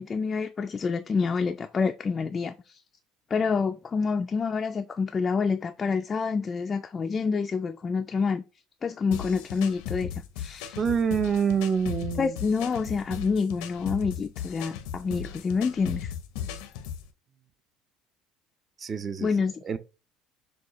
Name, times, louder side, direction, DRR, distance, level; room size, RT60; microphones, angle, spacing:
voice 1, 0.0-2.8 3.3-8.4 8.8-10.8 12.2-16.1 19.2-19.5, left 5 dB, 30° left, 0.3 m, -27 dB
sound 1, 9.1-17.1, left 9 dB, 90° left, 0.6 m, -37 dB
voice 2, 10.8-12.4 15.2-15.3 18.8-19.3 19.6-19.8, right 7 dB, 30° right, 0.5 m, -26 dB
6.3 x 2.3 x 3.0 m
cardioid pair, 120°, 0 cm